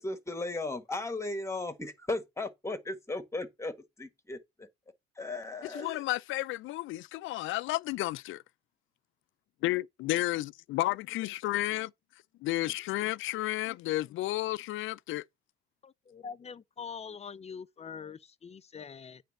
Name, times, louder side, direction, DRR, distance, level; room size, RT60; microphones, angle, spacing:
voice 1, 0.0-4.7 5.1-6.0, left 2 dB, 15° left, 1.5 m, -36 dB
voice 2, 5.7-8.4 9.6-11.9 12.4-15.2, left 17 dB, 85° left, 0.4 m, -32 dB
voice 3, 15.8-19.2, left 6 dB, 35° left, 0.6 m, -44 dB
9.0 x 3.3 x 6.4 m
cardioid pair, 90°, 20 cm